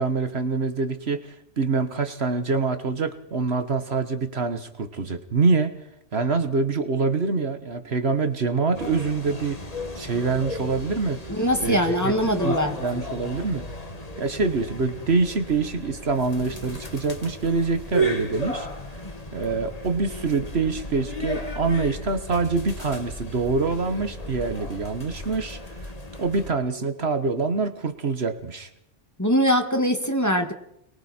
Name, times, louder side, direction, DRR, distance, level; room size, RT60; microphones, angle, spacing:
voice 1, 0.0-5.8 6.1-9.6 9.9-11.2 11.6-12.1 12.4-13.7 14.2-18.7 19.3-25.9 26.2-28.7, right 4 dB, 60° right, 9 dB, 1.6 m, -25 dB
sound 1, 8.7-26.5, equal, 35° left, 1.9 m, -34 dB
voice 2, 11.3-12.8 29.2-30.5, equal, 15° left, 5 dB, 2.1 m, -22 dB
29.0 x 22.0 x 4.4 m, 0.76 s
omnidirectional pair, 1.2 m